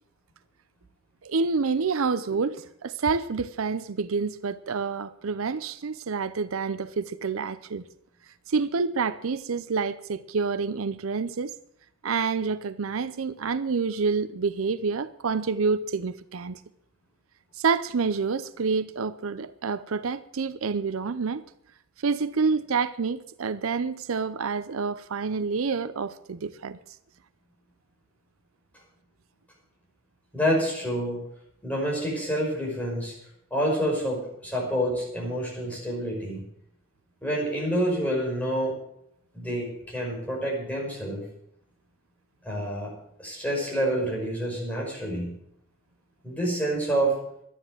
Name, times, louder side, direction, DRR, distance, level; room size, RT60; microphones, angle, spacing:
voice 1, 1.2-7.8 8.5-11.5 12.0-16.6 17.6-21.4 22.0-26.8, right 5 dB, 75° right, 0.6 m, -28 dB
voice 2, 30.3-31.2 31.6-33.1 33.5-36.4 37.2-38.7 39.3-41.2 42.4-42.9 43.2-45.3 46.2-47.2, right 1 dB, 5° left, 5.4 m, -28 dB
12.0 x 9.9 x 7.7 m
head